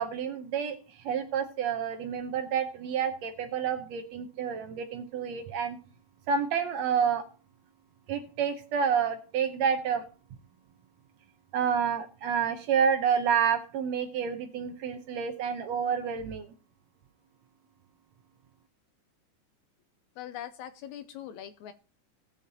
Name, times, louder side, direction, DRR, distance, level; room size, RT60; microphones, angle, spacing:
voice 1, 0.0-5.8 6.3-7.2 8.1-10.1 11.5-16.5, right 7 dB, 70° right, 7 dB, 1.7 m, -29 dB
voice 2, 20.2-21.7, left 11 dB, 80° left, 11 dB, 1.7 m, -41 dB
19.0 x 7.1 x 2.8 m, 0.37 s
omnidirectional pair, 3.7 m